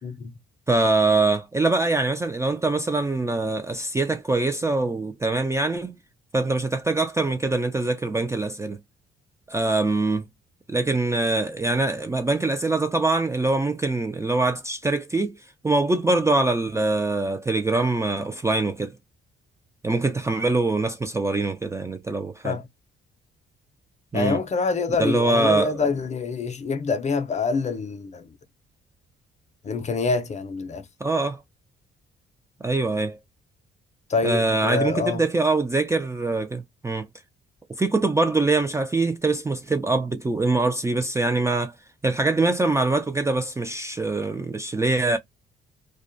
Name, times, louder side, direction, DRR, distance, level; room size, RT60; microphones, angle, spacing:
voice 1, 0.0-0.3 22.4-22.7 24.1-28.3 29.6-30.8 34.1-35.2, left 4 dB, 35° left, 0.5 m, -26 dB
voice 2, 0.7-6.0 6.3-8.8 9.5-10.3 10.7-15.4 15.6-18.9 19.8-22.6 24.1-24.4 25.0-25.8 31.0-31.4 32.6-33.2 34.2-37.1 37.8-41.7 42.0-45.2, right 2 dB, 15° right, 0.3 m, -23 dB
2.5 x 2.3 x 2.5 m
cardioid pair, 90°, 20 cm